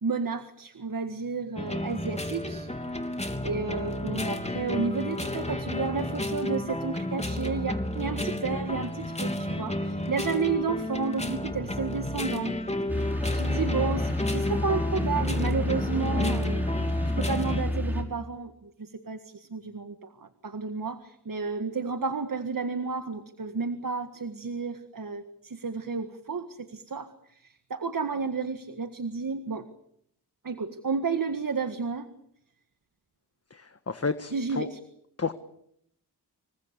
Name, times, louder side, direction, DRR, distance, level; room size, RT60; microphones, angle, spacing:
voice 1, 0.0-2.7 3.4-12.6 13.3-16.7 17.2-29.7 30.4-32.1 34.3-34.8, right 4 dB, 55° right, 9 dB, 1.8 m, -32 dB
sound 1, 1.6-17.6, left 1 dB, 15° left, 3.3 m, -32 dB
sound 2, 12.9-18.0, left 1 dB, 5° right, 5.7 m, -29 dB
voice 2, 33.5-34.7 35.2-35.3, left 4 dB, 40° left, 10 dB, 1.5 m, -31 dB
27.5 x 24.0 x 6.9 m, 0.73 s
wide cardioid pair, 75°, 40 cm